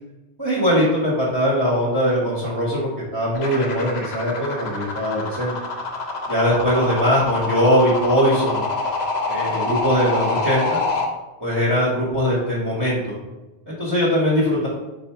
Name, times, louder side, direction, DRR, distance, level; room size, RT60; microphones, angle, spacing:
voice 1, 0.4-5.5 6.3-8.6 9.3-10.8 11.4-13.1 13.7-14.7, equal, 20° right, -7 dB, 1.1 m, -21 dB
sound 1, 3.3-11.1, left 3 dB, 50° left, 0.7 m, -26 dB
4.3 x 2.6 x 4.5 m, 1.1 s
omnidirectional pair, 1.1 m